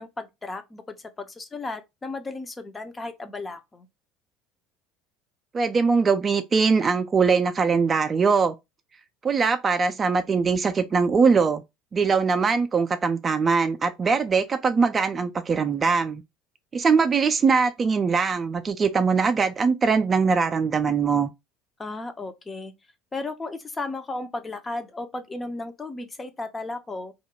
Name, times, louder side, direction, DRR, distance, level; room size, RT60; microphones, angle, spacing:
voice 1, 0.0-3.9 21.8-22.7 23.1-27.1, left 2 dB, 20° left, 0.5 m, -34 dB
voice 2, 5.5-8.6 9.2-11.6 11.9-16.2 16.7-21.3, right 5 dB, 30° right, 0.3 m, -22 dB
2.4 x 2.1 x 2.9 m
figure-of-eight pair, 65°, 0 cm